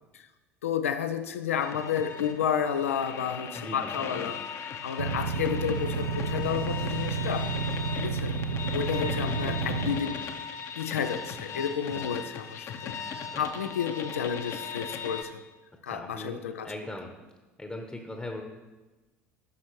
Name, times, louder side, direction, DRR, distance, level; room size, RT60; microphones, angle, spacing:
voice 1, 0.6-7.5 7.9-8.3 8.7-10.2 10.8-15.4 15.8-16.7, left 8 dB, 75° left, 9 dB, 0.5 m, -31 dB
sound 1, 1.6-15.2, left 6 dB, 40° left, 0.8 m, -38 dB
voice 2, 3.5-3.9 9.3-9.6 11.9-12.0 13.3-13.4 15.9-16.4 16.6-17.1 17.6-18.4, left 2 dB, 10° left, 3 dB, 1.0 m, -39 dB
sound 2, 5.0-10.0, right 5 dB, 80° right, 0.5 m, -31 dB
14.0 x 6.2 x 3.0 m, 1.2 s
figure-of-eight pair, 70°, 7 cm